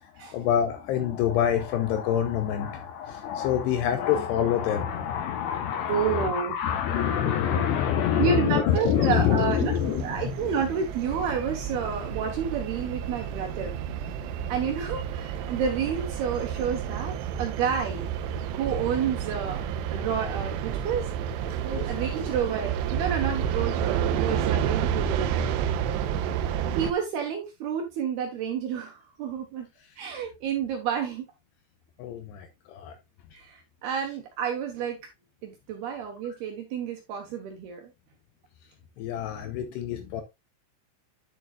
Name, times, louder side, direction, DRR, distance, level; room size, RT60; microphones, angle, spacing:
voice 1, 0.0-10.3 14.2-14.5 21.7-22.1 26.0-26.4 32.0-33.0 39.0-40.2, left 9 dB, 80° left, 2.4 m, -27 dB
voice 2, 5.9-6.5 7.5-7.6 8.2-9.7 10.0-13.8 14.5-18.0 18.5-19.6 19.9-21.1 21.6-25.6 26.8-29.7 30.0-31.3 33.3-35.0 35.4-37.9, right 7 dB, 70° right, 2.6 m, -30 dB
sound 1, 8.7-26.9, right 9 dB, 85° right, 2.5 m, -30 dB
10.5 x 7.0 x 2.4 m
omnidirectional pair, 5.8 m